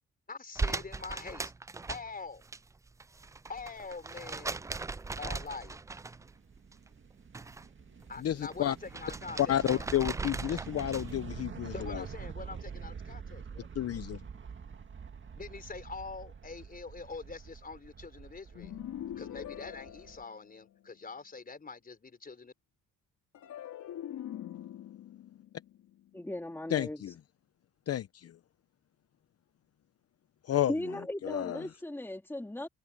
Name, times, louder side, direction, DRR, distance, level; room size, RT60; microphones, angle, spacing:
voice 1, 0.3-1.5 1.9-2.4 3.5-4.6 5.2-5.8 8.1-9.9 11.7-13.7 15.3-18.8 19.2-22.5, left 4 dB, 30° left, 4.4 m, -44 dB
sound 1, 0.6-2.6 2.9-6.4 6.7-7.7 8.0-11.2, right 3 dB, 10° right, 0.3 m, -39 dB
sound 2, 5.0-20.2, right 6 dB, 40° right, 2.0 m, -46 dB
voice 2, 8.2-8.8 9.4-12.0 13.7-14.2 26.7-27.1 27.9-28.4 30.4-30.7 31.2-31.6, left 11 dB, 55° left, 0.8 m, -31 dB
sound 3, 18.5-20.9 23.3-26.7, left 11 dB, 75° left, 3.6 m, -44 dB
voice 3, 26.1-27.0 30.7-32.7, left 1 dB, 5° left, 2.3 m, -37 dB
cardioid pair, 90°, 30 cm